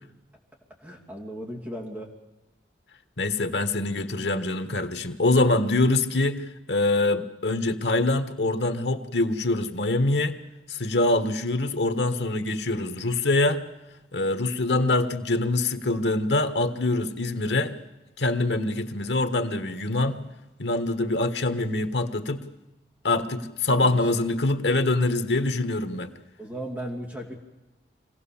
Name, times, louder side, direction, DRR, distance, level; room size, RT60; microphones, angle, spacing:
voice 1, 0.8-2.1 23.7-24.0 26.4-27.3, equal, 10° right, -1 dB, 2.7 m, -36 dB
voice 2, 3.2-10.4 10.7-13.7 14.1-17.8 18.2-20.3 20.6-22.5 23.0-26.1, left 2 dB, 90° left, 9 dB, 1.4 m, -24 dB
24.5 x 17.0 x 7.2 m, 1.0 s
head